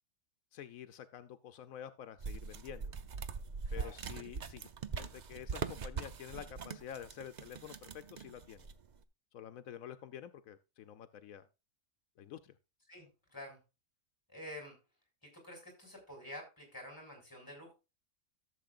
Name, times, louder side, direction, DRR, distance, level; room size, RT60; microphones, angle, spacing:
voice 1, 0.5-2.9 3.7-4.7 5.0-8.7 9.3-11.5 12.2-12.6, left 10 dB, 85° left, 10 dB, 1.1 m, -49 dB
sound 1, 2.2-9.0, right 5 dB, 45° right, 0.6 m, -42 dB
voice 2, 3.6-3.9 12.9-13.6 14.3-14.8 15.2-17.7, left 1 dB, 15° left, 2 dB, 4.8 m, -49 dB
14.0 x 7.1 x 2.5 m, 0.27 s
omnidirectional pair, 1.4 m